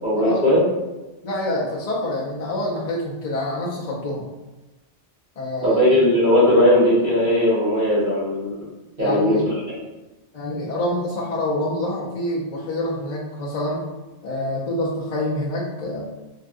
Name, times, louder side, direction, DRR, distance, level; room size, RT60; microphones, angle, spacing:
voice 1, 0.0-0.6 5.6-8.6 9.0-9.8, left 1 dB, 50° right, -10 dB, 1.6 m, -18 dB
voice 2, 1.2-4.3 5.4-5.8 9.0-9.5 10.3-13.8 14.2-16.1, left 1 dB, 50° left, -6 dB, 0.5 m, -26 dB
3.4 x 2.3 x 2.6 m, 1.1 s
omnidirectional pair, 1.1 m